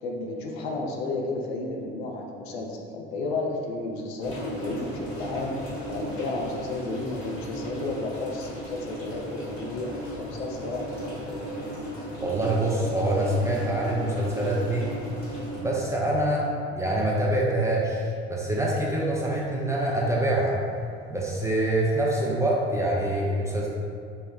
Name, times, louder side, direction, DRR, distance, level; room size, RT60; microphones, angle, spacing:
voice 1, 0.0-5.5 5.9-9.9 10.2-11.4, left 3 dB, 70° left, 0 dB, 0.5 m, -32 dB
sound 1, 4.2-15.6, right 1 dB, 45° left, 1.1 m, -36 dB
voice 2, 12.2-14.9 15.6-20.6 21.1-23.7, right 1 dB, 10° right, -4 dB, 0.4 m, -25 dB
3.4 x 2.1 x 2.3 m, 2.3 s
figure-of-eight pair, 55°, 32 cm